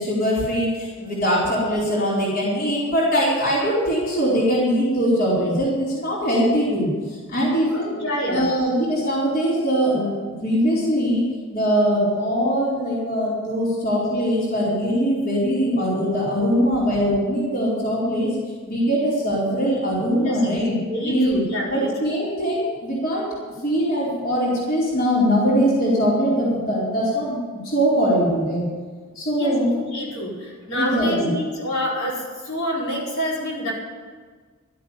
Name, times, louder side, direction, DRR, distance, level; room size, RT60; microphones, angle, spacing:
voice 1, 0.0-8.0 8.3-10.1 10.4-18.4 18.7-20.8 21.0-21.4 21.7-23.3 23.6-27.4 27.6-28.7 29.2-29.7 30.7-31.3, equal, 45° left, -7 dB, 4.6 m, -21 dB
voice 2, 7.7-8.5 20.2-20.6 20.9-21.9 29.4-33.7, equal, 65° left, -6 dB, 5.0 m, -27 dB
13.0 x 8.4 x 9.8 m, 1.5 s
head